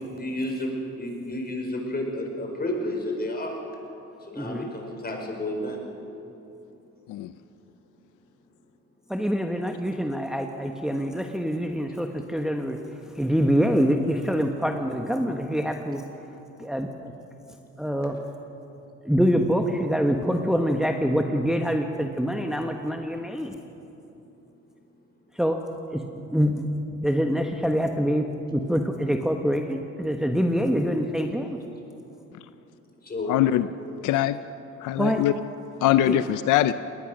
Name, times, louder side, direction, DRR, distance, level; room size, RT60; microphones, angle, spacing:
voice 1, 0.1-0.7 1.0-3.7 4.2-5.8 33.0-33.3, left 1 dB, 30° left, 1 dB, 5.1 m, -31 dB
voice 2, 4.4-4.7 9.1-12.8 13.1-16.0 16.6-17.1 17.8-18.2 19.0-23.6 25.3-25.6 25.9-26.0 26.3-28.2 28.5-31.6 35.0-35.2 36.1-36.2, equal, ahead, 3 dB, 1.3 m, -25 dB
voice 3, 33.3-33.7 34.0-34.4 34.8-35.3 35.8-36.7, left 13 dB, 85° left, 13 dB, 0.6 m, -22 dB
21.0 x 19.0 x 6.4 m, 2.9 s
cardioid pair, 90°, 30 cm